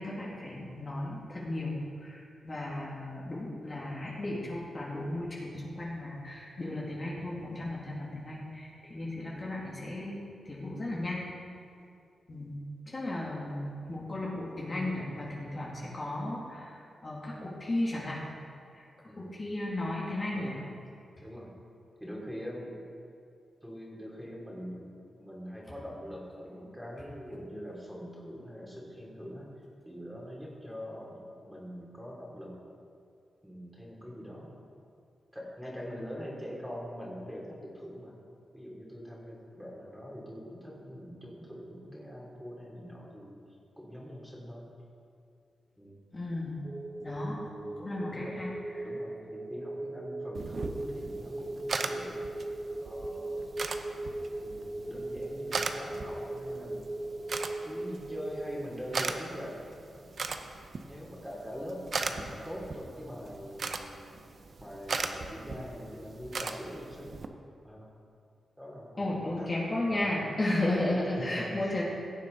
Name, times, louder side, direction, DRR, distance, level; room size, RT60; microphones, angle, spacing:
voice 1, 0.0-11.2 12.3-12.6 12.9-16.7 17.0-18.2 18.7-18.8 19.2-20.5 46.1-46.6 47.0-47.4 47.8-48.8 69.0-71.8, left 1 dB, 35° left, -5 dB, 2.3 m, -34 dB
voice 2, 19.1-19.4 20.3-20.7 21.2-21.6 22.0-22.8 23.6-24.9 25.2-29.5 29.9-32.6 33.4-34.5 35.3-38.1 38.5-43.4 43.8-44.7 45.8-46.0 47.2-48.3 48.8-52.3 52.8-53.5 54.4-56.8 57.6-59.5 60.0-60.3 60.8-64.2 64.6-67.2 67.6-67.9 68.6-69.5 69.9-70.1 71.1-71.8, equal, ahead, -3 dB, 2.9 m, -43 dB
sound 1, 46.6-58.6, right 1 dB, 20° right, 0.6 m, -39 dB
sound 2, 50.3-67.3, right 4 dB, 55° right, 0.7 m, -39 dB
17.0 x 7.5 x 3.9 m, 2.4 s
cardioid pair, 65°, 0 cm